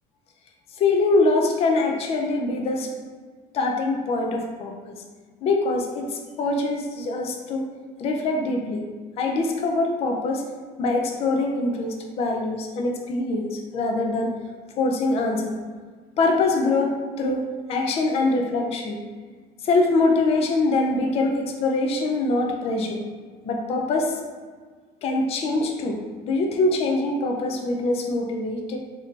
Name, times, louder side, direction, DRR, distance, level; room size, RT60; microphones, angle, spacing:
voice 1, 0.8-2.9 3.5-4.7 5.4-7.7 8.0-8.8 9.2-10.4 10.8-14.3 14.8-15.5 16.2-19.0 19.6-23.0 23.4-24.2 25.0-28.8, left 2 dB, 35° left, 2 dB, 0.4 m, -23 dB
2.7 x 2.5 x 3.5 m, 1.5 s
cardioid pair, 155°, 17 cm